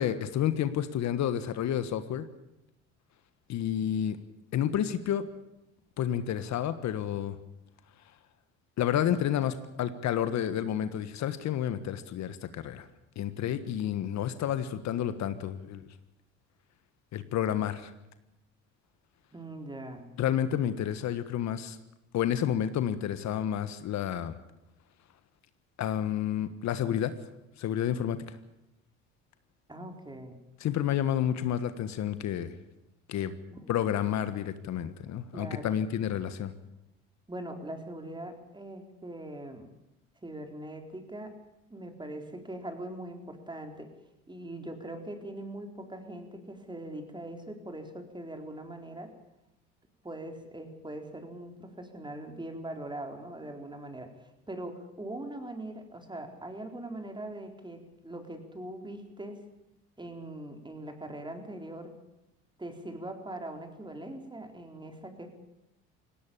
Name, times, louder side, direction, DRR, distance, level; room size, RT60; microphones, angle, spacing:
voice 1, 0.0-2.2 3.5-4.2 4.5-5.2 6.0-7.4 8.8-12.9 13.1-15.8 17.1-17.9 20.2-21.8 22.1-24.4 25.8-27.1 27.6-28.4 30.6-32.6 33.1-33.3 33.7-36.5, left 10 dB, 60° left, 12 dB, 1.4 m, -30 dB
voice 2, 19.3-20.1 29.7-30.4 33.5-33.7 35.3-35.7 37.3-39.7 40.2-41.3 41.7-43.9 44.3-49.1 50.0-59.4 60.0-61.9 62.6-65.4, right 1 dB, 15° right, 5 dB, 4.2 m, -41 dB
19.0 x 17.5 x 8.7 m, 0.90 s
supercardioid pair, 70°, 31 cm